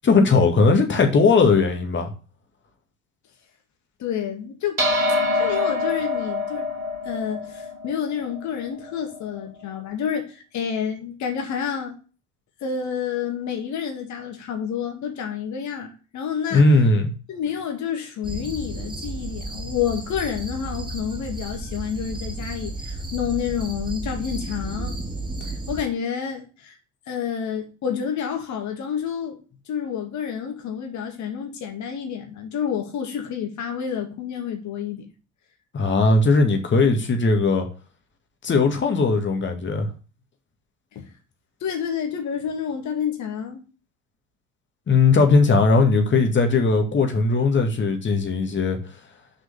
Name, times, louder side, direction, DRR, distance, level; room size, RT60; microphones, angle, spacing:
voice 1, 0.0-2.1 16.5-17.1 35.7-37.7 38.4-39.9 44.9-48.8, left 3 dB, 30° left, 2.0 m, -18 dB
voice 2, 4.0-4.8 5.3-6.7 7.0-12.0 12.6-16.7 17.3-25.0 25.4-26.8 27.1-29.4 29.7-35.0 40.9-41.1 41.6-43.6, left 8 dB, 45° left, 2.1 m, -29 dB
sound 1, 4.8-9.4, left 2 dB, 85° right, 1.7 m, -26 dB
sound 2, 18.2-25.8, right 2 dB, 10° right, 1.6 m, -33 dB
6.4 x 5.0 x 6.8 m
figure-of-eight pair, 60°, 41 cm